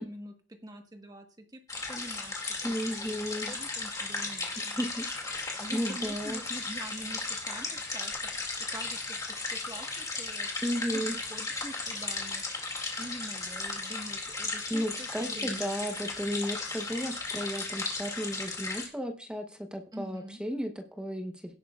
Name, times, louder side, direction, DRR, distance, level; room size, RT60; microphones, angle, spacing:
voice 1, 0.0-1.6 1.9-3.2 3.5-4.5 5.6-8.1 8.4-10.5 10.9-12.4 13.0-16.4 19.9-20.4, right 1 dB, 20° right, 5 dB, 1.3 m, -45 dB
sound 1, 1.7-18.9, left 3 dB, 20° left, 2.2 m, -36 dB
voice 2, 2.6-3.5 4.6-6.4 10.6-11.1 14.7-21.5, equal, 5° right, 4 dB, 0.9 m, -34 dB
17.0 x 8.4 x 2.4 m, 0.38 s
head